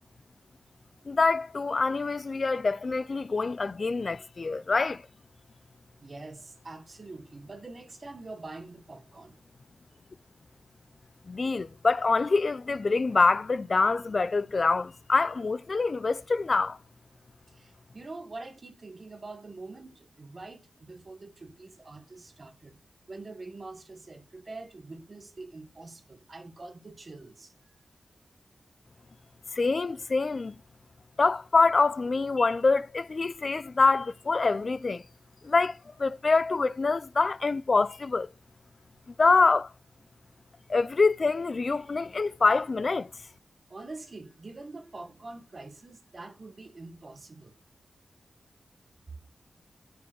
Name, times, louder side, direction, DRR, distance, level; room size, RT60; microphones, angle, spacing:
voice 1, 1.1-5.1 11.3-16.8 29.5-30.6 31.2-35.0 35.4-38.3 39.2-39.7 40.7-43.1, left 3 dB, 45° left, 0.3 m, -25 dB
voice 2, 6.0-9.4 17.5-22.8 23.1-27.5 43.7-47.5, right 3 dB, 40° right, 1.1 m, -45 dB
6.4 x 4.7 x 6.8 m
wide cardioid pair, 120°, 0 cm